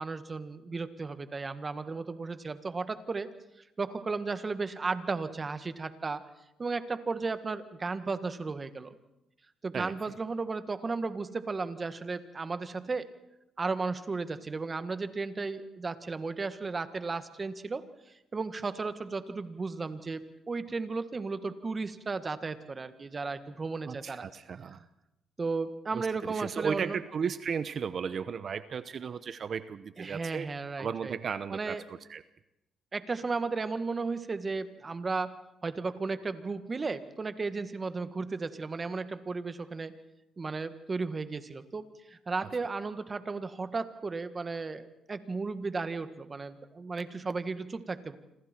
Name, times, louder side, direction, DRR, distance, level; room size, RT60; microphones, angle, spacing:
voice 1, 0.0-3.3 3.8-6.2 6.6-8.9 9.6-13.1 13.6-17.8 18.3-24.2 24.7-24.8 25.4-27.0 30.0-31.1 31.5-31.8 32.9-39.9 40.4-41.8 42.1-48.2, right 4 dB, 30° right, 10 dB, 1.7 m, -34 dB
voice 2, 23.9-24.8 25.9-30.5 30.8-32.2, right 6 dB, 50° right, 13 dB, 0.9 m, -35 dB
28.0 x 26.5 x 4.5 m, 0.90 s
cardioid pair, 90°, 0 cm